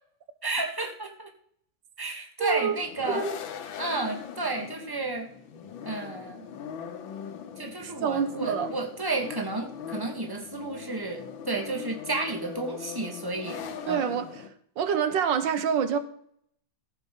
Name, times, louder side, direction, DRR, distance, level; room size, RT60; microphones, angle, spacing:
voice 1, 0.4-1.3 2.0-3.2 3.8-5.3 5.9-6.5 7.6-14.1, right 3 dB, 10° right, 3 dB, 1.9 m, -32 dB
voice 2, 2.4-2.8 3.1-3.4 7.8-8.7 13.9-14.5 14.8-16.0, right 7 dB, 70° right, 11 dB, 1.8 m, -27 dB
sound 1, 2.6-14.5, left 7 dB, 85° left, 1.9 m, -40 dB
14.5 x 7.2 x 5.4 m, 0.64 s
omnidirectional pair, 2.1 m